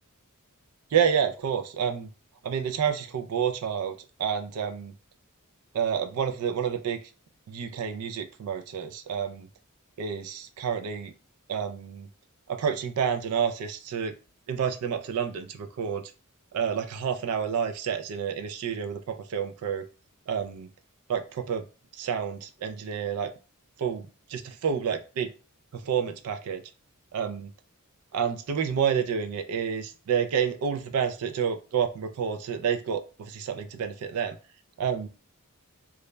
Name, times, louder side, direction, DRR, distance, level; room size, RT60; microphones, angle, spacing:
voice 1, 0.9-2.1 2.4-3.9 4.2-4.9 5.7-7.0 7.5-9.5 10.0-11.1 11.5-12.1 12.5-14.1 14.5-16.0 16.5-19.8 20.3-20.7 21.1-21.6 21.9-23.3 23.8-25.3 25.7-26.6 27.1-27.5 28.1-34.4 34.8-35.1, right 7 dB, 75° right, 8 dB, 0.4 m, -29 dB
2.3 x 2.1 x 3.1 m, 0.33 s
head